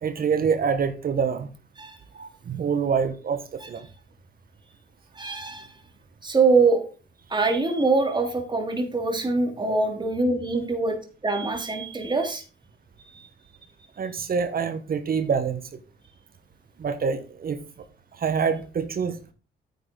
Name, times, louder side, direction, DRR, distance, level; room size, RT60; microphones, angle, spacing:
voice 1, 0.0-1.5 2.1-3.9 14.0-15.6 16.8-17.6 18.1-19.3, right 6 dB, 45° right, 10 dB, 1.2 m, -26 dB
voice 2, 5.2-5.7 6.2-6.8 7.3-11.0 11.2-12.4 13.1-13.3, right 3 dB, 25° right, 3 dB, 3.1 m, -23 dB
9.5 x 9.1 x 3.9 m, 0.33 s
cardioid pair, 90°, 20 cm